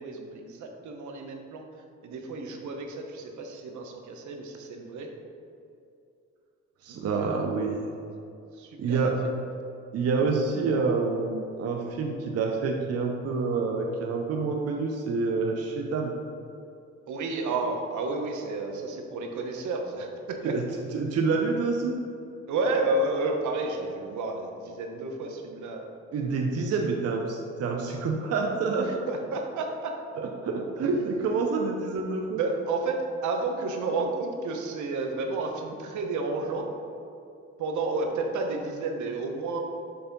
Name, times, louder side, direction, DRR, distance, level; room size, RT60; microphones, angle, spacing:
voice 1, 0.0-1.6 2.0-5.1 6.9-7.6 8.5-9.1 17.1-20.6 22.5-25.9 28.6-29.9 30.8-31.0 32.3-36.7 37.6-39.6, right 3 dB, 75° right, 3 dB, 1.0 m, -31 dB
voice 2, 6.8-7.9 8.8-9.2 9.9-16.1 20.4-20.6 20.9-22.0 26.1-29.0 30.2-32.4, right 4 dB, 55° right, 1 dB, 0.7 m, -27 dB
6.9 x 3.4 x 5.2 m, 2.5 s
cardioid pair, 90°, 30 cm